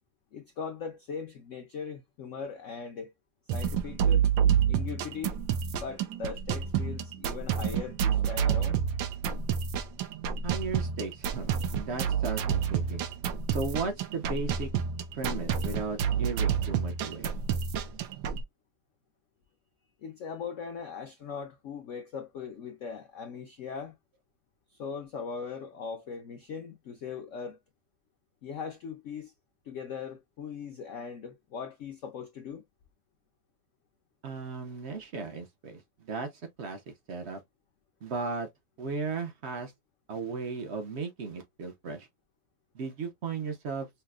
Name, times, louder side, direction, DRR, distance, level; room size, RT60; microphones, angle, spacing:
voice 1, 0.3-3.1 3.5-4.2 4.7-8.8 20.0-23.9 24.8-27.6 28.4-29.3 29.7-32.6, left 6 dB, 80° left, 0.6 m, -40 dB
sound 1, 3.5-18.4, right 8 dB, 90° right, 1.4 m, -29 dB
voice 2, 10.4-13.1 13.5-14.7 15.1-17.3 34.2-36.3 36.6-36.8 37.1-37.4 38.0-38.5 38.8-39.7 40.1-42.1 42.7-43.9, right 4 dB, 70° right, 0.6 m, -35 dB
5.6 x 2.0 x 2.3 m
omnidirectional pair, 2.1 m